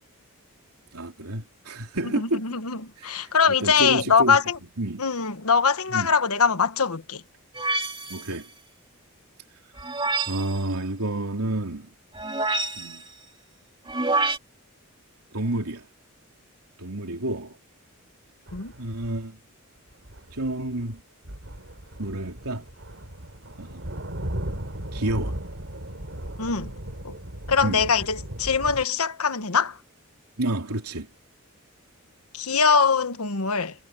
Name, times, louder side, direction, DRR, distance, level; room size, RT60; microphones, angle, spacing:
voice 1, 0.9-2.4 3.0-4.4 4.8-5.0 5.9-6.1 8.1-8.5 10.3-11.9 12.8-13.0 15.3-15.9 16.8-17.6 18.8-19.4 20.3-21.0 22.0-22.6 23.6-23.9 24.9-25.4 27.6-27.8 30.4-31.1, right 1 dB, 90° right, 3.2 m, -29 dB
voice 2, 2.0-4.6 5.0-7.2 18.5-18.7 26.4-26.7 27.0-27.1 27.5-29.8 32.3-33.7, left 5 dB, 80° left, 1.4 m, -22 dB
sound 1, 7.5-8.4 9.8-10.6 12.1-13.1 13.9-14.4, right 3 dB, 20° right, 2.6 m, -27 dB
sound 2, 18.5-19.2 19.9-21.0 21.3-28.9, right 1 dB, 60° right, 3.2 m, -37 dB
head